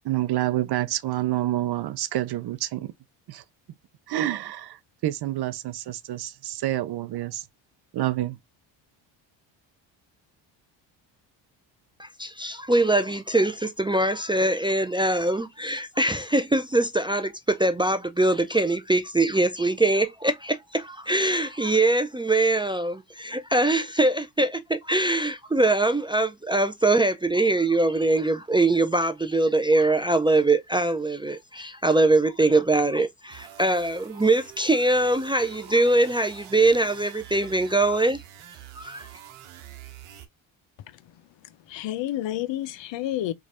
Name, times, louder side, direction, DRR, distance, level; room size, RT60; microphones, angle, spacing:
voice 1, 0.0-2.9 3.3-3.4 4.1-7.4 7.9-8.4, right 14 dB, 50° right, 0.6 m, -28 dB
voice 2, 12.0-38.2 38.8-39.1, right 2 dB, 10° right, 0.4 m, -23 dB
sound 1, 33.3-40.3, right 11 dB, 75° right, 1.0 m, -46 dB
voice 3, 40.9-43.3, left 13 dB, 60° left, 0.7 m, -31 dB
3.1 x 2.4 x 4.2 m
supercardioid pair, 70°, 49 cm